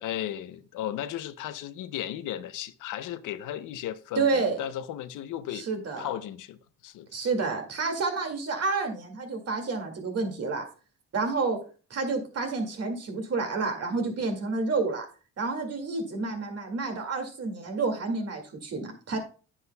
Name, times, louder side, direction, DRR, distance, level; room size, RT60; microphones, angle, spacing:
voice 1, 0.0-5.7 6.0-7.3, left 11 dB, 85° left, 0.7 m, -35 dB
voice 2, 4.2-4.6 5.5-6.1 7.1-10.6 11.1-11.6 11.9-15.1 15.4-19.2, right 4 dB, 55° right, 2.2 m, -29 dB
9.7 x 7.9 x 2.2 m
cardioid pair, 90°, 30 cm